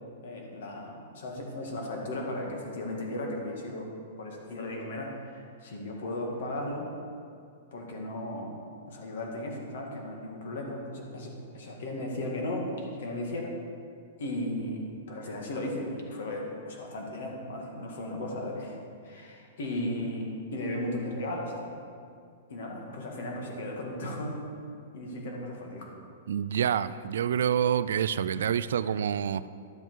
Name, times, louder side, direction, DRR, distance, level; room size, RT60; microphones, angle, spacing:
voice 1, 0.2-3.9 4.2-6.9 7.7-8.6 8.9-13.6 14.2-18.8 19.0-21.7 22.5-24.5 24.9-25.9, left 1 dB, 60° left, 0 dB, 2.1 m, -36 dB
voice 2, 26.3-29.5, right 8 dB, 75° right, 16 dB, 0.3 m, -27 dB
11.5 x 7.8 x 4.7 m, 2.3 s
supercardioid pair, 175°, 0 cm